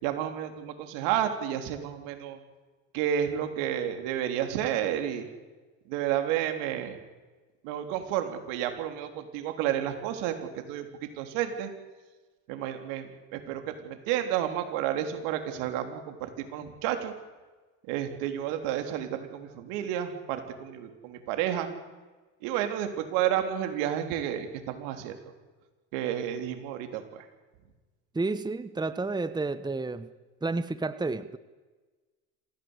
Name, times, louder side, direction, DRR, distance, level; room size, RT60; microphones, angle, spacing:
voice 1, 0.0-2.4 2.9-5.3 5.9-7.0 7.6-10.9 11.2-11.7 12.5-17.1 17.9-21.7 22.4-25.1 25.9-27.3, right 10 dB, 80° right, 6 dB, 3.8 m, -31 dB
voice 2, 28.1-30.1 30.4-31.4, right 3 dB, 10° right, 13 dB, 1.1 m, -31 dB
27.0 x 16.5 x 8.2 m, 1.3 s
supercardioid pair, 90°, 41 cm